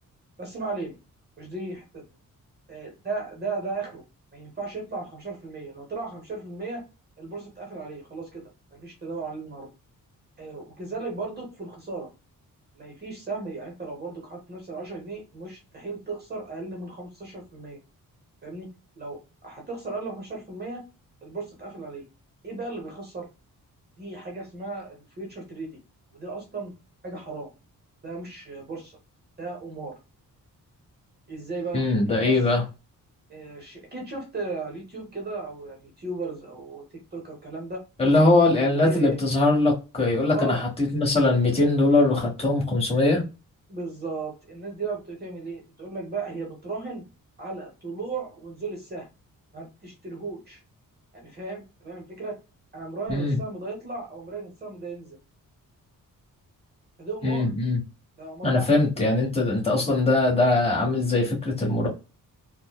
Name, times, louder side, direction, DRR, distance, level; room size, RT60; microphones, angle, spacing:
voice 1, 0.4-1.0 1.4-2.0 2.7-4.0 4.3-6.8 7.2-9.7 10.4-12.1 12.7-17.8 18.4-18.7 19.0-20.8 21.2-22.0 22.4-23.3 24.0-25.8 26.1-26.7 27.0-27.5 28.0-29.0 29.4-29.9 31.3-31.9 32.1-32.4 33.3-36.8 37.1-37.8 38.1-38.3 38.7-39.2 40.3-40.6 43.7-47.0 47.4-49.1 49.5-50.6 51.1-52.4 52.7-55.2 57.0-57.5 58.2-58.7, right 3 dB, 30° right, 0.8 m, -35 dB
voice 2, 31.7-32.6 38.0-43.2 53.1-53.4 57.2-57.8 58.4-61.9, left 2 dB, 15° left, 1.2 m, -21 dB
4.2 x 2.1 x 2.2 m
wide cardioid pair, 165°, 34 cm